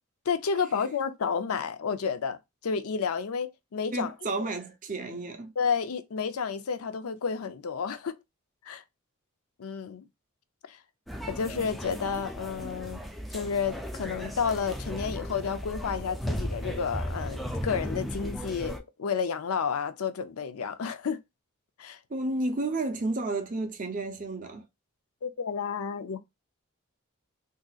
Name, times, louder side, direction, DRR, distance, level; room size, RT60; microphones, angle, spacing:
voice 1, 0.3-2.4 2.6-4.1 5.6-8.2 8.7-8.8 9.6-10.1 10.7-10.8 11.3-13.0 13.3-21.2 21.8-22.0 25.2-26.2, left 6 dB, 90° left, 0.5 m, -31 dB
voice 2, 3.9-5.5 22.1-24.6, right 2 dB, 35° right, 0.7 m, -31 dB
sound 1, 11.1-18.8, equal, ahead, 0.3 m, -36 dB
3.7 x 2.8 x 2.3 m
head